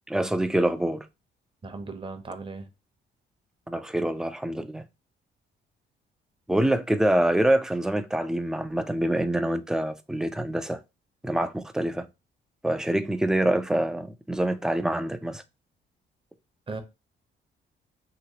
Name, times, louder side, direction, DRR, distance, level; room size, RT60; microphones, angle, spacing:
voice 1, 0.1-1.1 3.7-4.8 6.5-10.8 11.2-12.1 12.6-15.4, right 1 dB, 5° right, 0.3 m, -25 dB
voice 2, 1.6-2.7 16.7-16.8, right 3 dB, 25° right, 0.7 m, -37 dB
3.0 x 3.0 x 2.8 m
cardioid pair, 90°, 20 cm